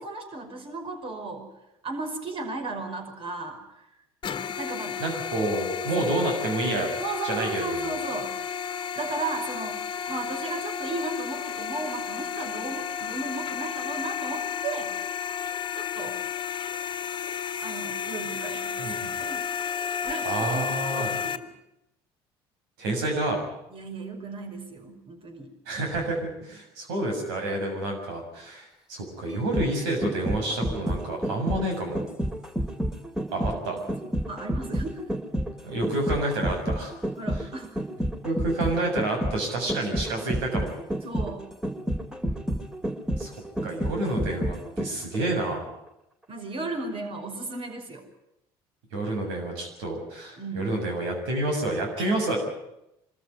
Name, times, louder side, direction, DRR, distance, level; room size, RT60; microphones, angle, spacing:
voice 1, 0.0-1.5 1.8-3.6 4.6-5.0 6.0-6.2 7.0-8.4 8.9-9.8 10.1-15.0 15.7-16.2 17.6-19.4 20.0-20.6 20.9-21.5 23.7-25.5 33.7-33.8 34.3-35.0 37.1-37.8 41.0-41.5 46.3-48.1 50.4-50.7 52.0-52.1, right 3 dB, 45° right, 5 dB, 5.4 m, -35 dB
sound 1, 4.2-21.4, left 8 dB, 35° left, 1.6 m, -32 dB
voice 2, 5.0-6.9 7.2-8.0 18.8-19.1 20.2-21.1 22.8-23.4 25.7-32.0 33.3-33.8 35.6-36.9 38.2-40.8 42.2-42.4 43.2-43.4 43.6-45.7 48.9-52.4, right 2 dB, 80° right, 3 dB, 7.0 m, -29 dB
sound 2, 29.3-45.2 45.5-45.6, equal, 5° right, 2.4 m, -30 dB
25.0 x 14.0 x 9.8 m, 0.85 s
hypercardioid pair, 70°, 13 cm